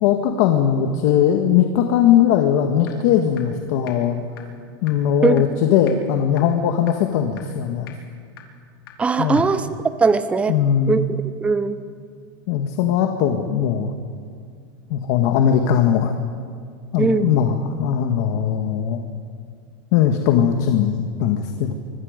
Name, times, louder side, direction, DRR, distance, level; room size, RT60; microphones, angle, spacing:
voice 1, 0.0-4.2 4.8-7.9 9.2-9.4 10.5-11.0 12.5-13.9 14.9-16.2 16.9-19.0 19.9-21.7, left 9 dB, 55° left, 4 dB, 1.7 m, -19 dB
sound 1, 2.9-3.0 3.4-3.5 3.9-4.0 4.4-4.5 4.9-5.0 5.4-5.5 5.9-6.0 6.4-6.5 6.9-7.0 7.4-7.5 7.9-8.0 8.4-8.5 8.9-9.0 9.4-9.5, left 13 dB, 85° left, 3.5 m, -40 dB
voice 2, 9.0-9.7 10.0-10.6 10.9-11.8 17.0-17.3, right 4 dB, 10° right, 12 dB, 0.8 m, -20 dB
24.5 x 23.5 x 5.2 m, 2.2 s
supercardioid pair, 155°, 12 cm